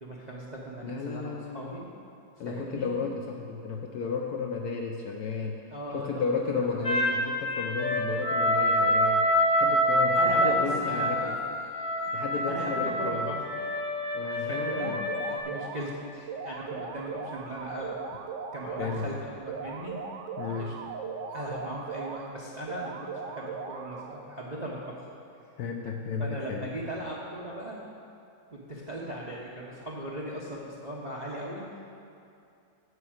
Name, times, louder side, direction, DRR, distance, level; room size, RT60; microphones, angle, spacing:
voice 1, 0.0-1.9 2.4-2.9 5.7-7.0 8.0-8.1 10.1-12.1 12.5-13.6 14.3-15.0 15.3-18.2 18.5-20.0 20.5-20.7 21.3-25.0 26.2-27.8 28.5-31.8, right 1 dB, 40° right, -4 dB, 0.6 m, -38 dB
voice 2, 0.8-1.8 2.4-5.6 5.9-9.2 9.5-11.4 12.1-13.3 14.1-15.0 18.8-19.2 20.4-20.8 25.6-26.7, left 5 dB, 70° left, 2 dB, 0.9 m, -33 dB
sound 1, 6.8-15.4, equal, 45° left, 0.6 m, -26 dB
sound 2, 14.7-15.9 16.3-19.1 19.5-22.3 22.7-24.3, right 5 dB, 75° right, 1.3 m, -38 dB
8.1 x 6.0 x 7.8 m, 2.5 s
omnidirectional pair, 2.1 m